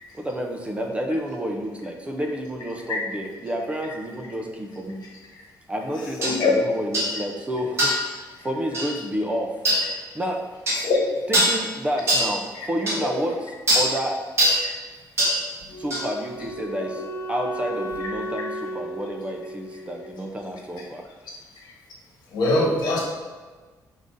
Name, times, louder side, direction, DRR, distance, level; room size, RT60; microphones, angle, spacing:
voice 1, 0.1-5.0 5.7-9.5 10.1-10.4 11.3-14.2 15.8-21.0, equal, 15° right, 2 dB, 0.4 m, -30 dB
voice 2, 6.2-6.5 10.8-11.0 22.3-23.0, left 2 dB, 80° left, -3 dB, 1.4 m, -21 dB
sound 1, 6.2-6.4 6.9-7.1 7.8-8.1 8.7-8.9 9.6-9.8 10.7-10.8 11.3-11.6 12.1-12.3 12.9-13.0 13.7-13.9 14.4-14.6 15.2-15.4 15.9-16.1, equal, 40° right, 1.1 m, -21 dB
Wind instrument woodwind instrument, 15.7-20.8, right 1 dB, 45° left, 0.4 m, -35 dB
5.3 x 2.6 x 3.5 m, 1.4 s
cardioid pair, 140°, 7 cm